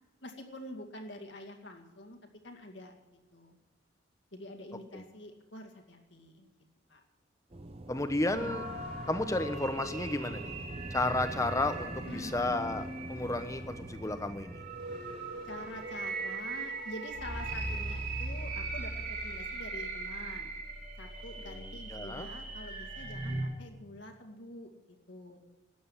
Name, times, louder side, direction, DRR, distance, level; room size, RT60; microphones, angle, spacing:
voice 1, 0.2-2.9 3.3-3.6 4.3-6.5 6.9-7.0 12.0-12.4 15.4-20.5 21.0-25.4, left 1 dB, 65° left, 3 dB, 2.2 m, -46 dB
sound 1, 7.5-16.6, right 1 dB, 30° right, 0.8 m, -44 dB
voice 2, 7.9-8.7 9.1-10.5 10.9-14.6 21.9-22.3, left 2 dB, 15° left, 10 dB, 0.9 m, -32 dB
sound 2, 8.3-23.4, right 3 dB, 50° right, 5.0 m, -40 dB
13.5 x 9.4 x 9.6 m, 1.1 s
head